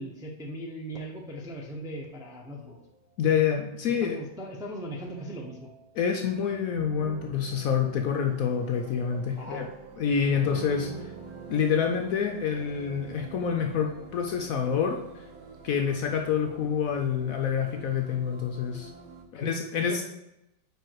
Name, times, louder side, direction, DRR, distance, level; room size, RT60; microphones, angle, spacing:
voice 1, 0.0-2.8 4.0-5.7 9.4-9.7 10.8-10.9 19.3-20.0, right 1 dB, 5° right, -1 dB, 0.4 m, -39 dB
sound 1, 1.0-19.2, right 5 dB, 75° right, 1.6 m, -47 dB
voice 2, 3.2-4.2 5.9-9.7 10.0-10.9 11.5-15.0 15.6-18.9 19.3-20.0, left 7 dB, 70° left, 3 dB, 0.9 m, -27 dB
4.9 x 4.8 x 4.6 m, 0.87 s
omnidirectional pair, 1.9 m